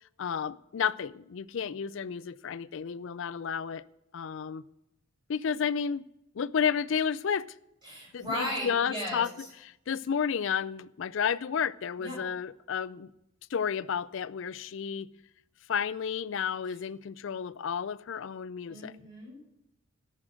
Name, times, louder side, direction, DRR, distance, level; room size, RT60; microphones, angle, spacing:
voice 1, 0.2-3.8 4.1-4.6 5.3-6.0 6.3-7.5 8.1-13.1 13.5-15.1 15.7-18.9, left 7 dB, 60° left, 0.4 m, -31 dB
voice 2, 7.8-9.2 12.0-12.2 18.7-19.4, equal, 20° right, 6.0 m, -36 dB
13.5 x 6.5 x 7.7 m
head